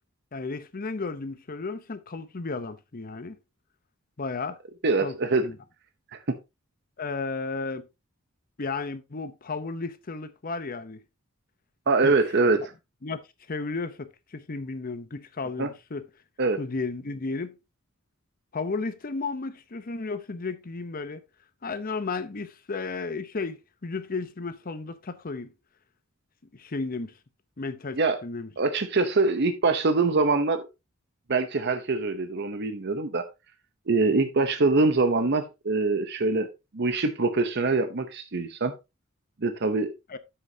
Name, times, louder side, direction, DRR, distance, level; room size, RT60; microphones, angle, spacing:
voice 1, 0.3-3.4 4.2-4.6 5.0-5.1 5.4-5.6 7.0-7.9 8.6-11.0 12.0-12.1 13.0-13.2 13.5-16.1 16.6-17.5 18.5-21.2 21.6-25.5 26.5-27.1 27.6-28.5 40.1-40.2, left 3 dB, 45° left, 0.8 m, -33 dB
voice 2, 4.8-5.5 6.1-6.4 11.9-12.7 15.6-15.7 16.4-16.6 27.9-28.2 28.6-30.6 31.3-33.2 33.9-38.7 39.4-39.9, right 3 dB, 55° right, 0.8 m, -24 dB
9.7 x 7.9 x 2.8 m
head